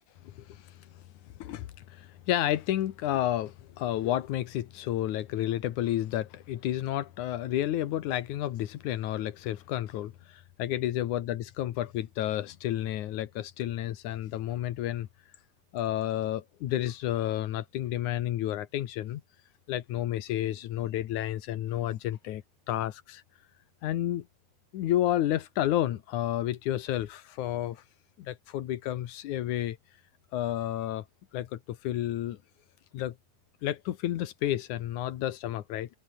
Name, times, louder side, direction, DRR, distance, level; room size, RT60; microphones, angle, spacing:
voice 1, 0.2-0.8 1.4-15.1 15.7-19.2 19.7-23.2 23.8-24.3 24.7-27.8 28.2-29.8 30.3-31.0 31.3-32.4 32.9-33.1 33.6-35.9, left 12 dB, 85° left, 2.7 m, -31 dB
omnidirectional pair, 3.4 m